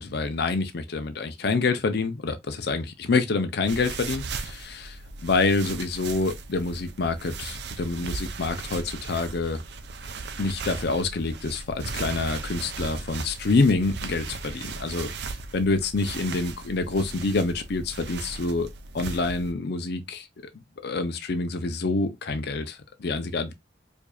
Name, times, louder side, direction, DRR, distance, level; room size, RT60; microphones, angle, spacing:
voice 1, 0.0-9.6 10.4-15.1 15.5-18.7 18.9-20.3 20.8-23.5, left 3 dB, 60° left, 0.5 m, -27 dB
sound 1, 3.7-19.5, right 4 dB, 65° right, 0.5 m, -37 dB
4.7 x 2.6 x 2.3 m
head